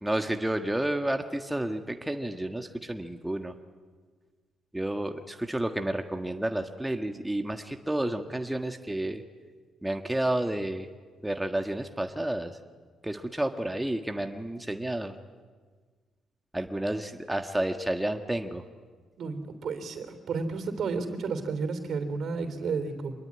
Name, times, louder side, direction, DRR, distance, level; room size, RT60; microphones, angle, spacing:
voice 1, 0.0-3.5 4.7-9.2 9.8-10.9 11.2-12.6 13.0-15.1 16.5-18.6, right 1 dB, 10° right, 5 dB, 1.5 m, -30 dB
voice 2, 19.2-23.1, right 4 dB, 60° right, 9 dB, 3.4 m, -32 dB
26.0 x 21.5 x 9.7 m, 1.5 s
cardioid pair, 90°, 0 cm